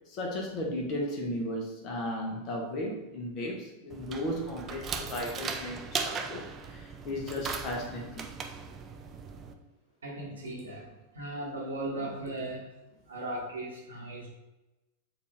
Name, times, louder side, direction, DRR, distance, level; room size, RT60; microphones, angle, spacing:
voice 1, 0.1-6.4 6.7-8.3 10.6-10.7 12.0-12.1, left 1 dB, 35° left, 0 dB, 1.0 m, -35 dB
sound 1, 3.9-9.5, right 5 dB, 25° right, 0.3 m, -38 dB
voice 2, 10.0-10.9 11.1-12.7 13.1-14.3, right 1 dB, 70° right, -3 dB, 1.1 m, -37 dB
4.3 x 2.7 x 3.3 m, 1.0 s
figure-of-eight pair, 90°, 0 cm